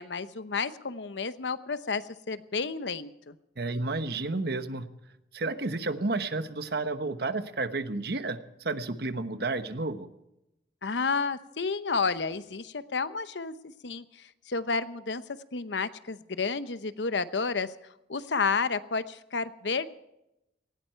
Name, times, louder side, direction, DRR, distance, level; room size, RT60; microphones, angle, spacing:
voice 1, 0.0-3.3 10.8-14.0 14.5-15.2 15.5-17.7 18.1-19.9, left 4 dB, 85° left, 13 dB, 0.9 m, -31 dB
voice 2, 3.6-4.9 5.3-10.1, right 3 dB, 65° right, 10 dB, 1.2 m, -31 dB
18.5 x 17.0 x 4.5 m, 0.86 s
head